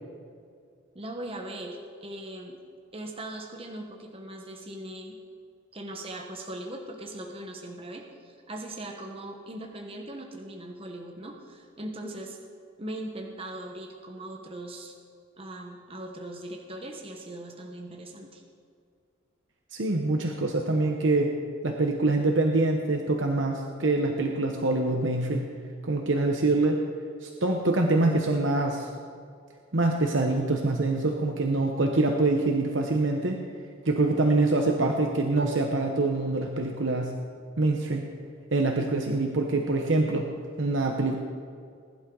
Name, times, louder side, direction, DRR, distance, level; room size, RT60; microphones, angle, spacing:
voice 1, 0.9-2.6 2.9-5.2 5.7-12.4 12.8-14.9 15.4-18.4, right 1 dB, 30° right, 1 dB, 1.2 m, -39 dB
voice 2, 19.7-21.3 21.6-25.5 25.8-26.8 27.2-28.9 29.7-33.4 33.8-37.2 37.6-38.1 38.5-40.3 40.6-41.2, right 2 dB, 75° right, 2 dB, 1.1 m, -25 dB
20.5 x 11.5 x 3.9 m, 2.2 s
head